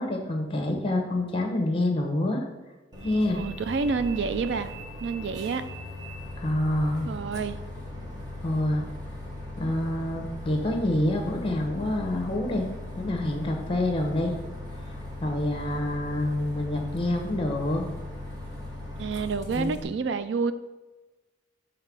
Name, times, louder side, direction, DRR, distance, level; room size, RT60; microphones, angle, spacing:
voice 1, 0.0-2.4 3.0-3.4 6.4-7.1 8.4-8.8 9.6-12.7 13.0-14.3 15.2-17.9 19.5-19.8, left 1 dB, 30° left, 4 dB, 1.1 m, -27 dB
Bus, 2.9-19.8, left 1 dB, 20° right, 1.4 m, -39 dB
voice 2, 3.3-4.7 5.0-5.6 7.0-7.6 19.0-20.5, right 4 dB, 70° right, 12 dB, 0.4 m, -28 dB
6.7 x 3.6 x 6.1 m, 1.2 s
head